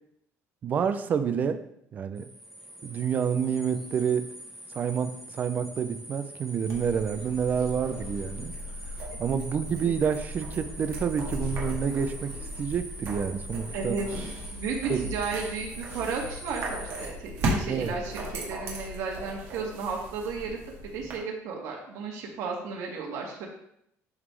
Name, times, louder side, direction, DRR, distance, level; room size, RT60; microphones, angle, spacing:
voice 1, 0.6-1.6 1.9-2.3 2.8-4.3 4.7-8.5 9.2-14.0 14.9-15.1 17.6-17.9, right 7 dB, 30° right, 10 dB, 0.5 m, -28 dB
sound 1, 2.2-17.1, right 1 dB, 5° right, 0.9 m, -44 dB
sound 2, 6.6-21.2, equal, 55° right, 1.7 m, -36 dB
voice 2, 13.7-14.1 14.5-20.6 20.9-23.5, right 4 dB, 75° right, -1 dB, 1.7 m, -33 dB
11.0 x 3.7 x 3.3 m, 0.75 s
cardioid pair, 175°, 5 cm